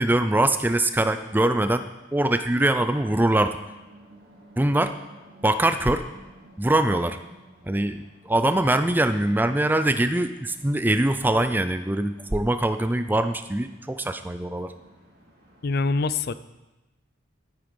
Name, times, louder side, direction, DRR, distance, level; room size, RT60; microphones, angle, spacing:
voice 1, 0.0-1.8 2.1-3.6 4.6-4.9 5.4-6.0 6.6-7.2 7.7-14.7, right 1 dB, 10° right, 10 dB, 0.4 m, -23 dB
sound 1, 0.7-15.7, right 1 dB, 50° right, 4.0 m, -54 dB
voice 2, 15.6-16.3, left 3 dB, 50° left, 14 dB, 0.4 m, -24 dB
12.0 x 9.0 x 5.2 m, 1.0 s
head